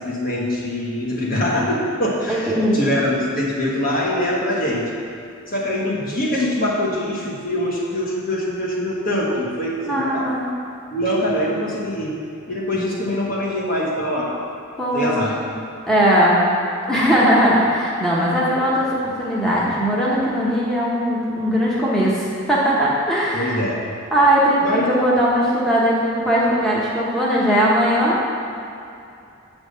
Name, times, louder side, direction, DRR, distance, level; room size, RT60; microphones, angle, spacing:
voice 1, 0.0-4.9 5.5-10.3 10.9-12.1 12.5-14.3 14.9-15.3 23.3-23.8 24.6-24.9, left 1 dB, 45° left, -4 dB, 1.2 m, -23 dB
voice 2, 2.3-3.0 9.8-10.5 14.8-15.5 15.9-16.4 16.9-23.6 24.1-28.2, equal, ahead, -8 dB, 1.0 m, -19 dB
7.9 x 3.5 x 6.5 m, 2.6 s
head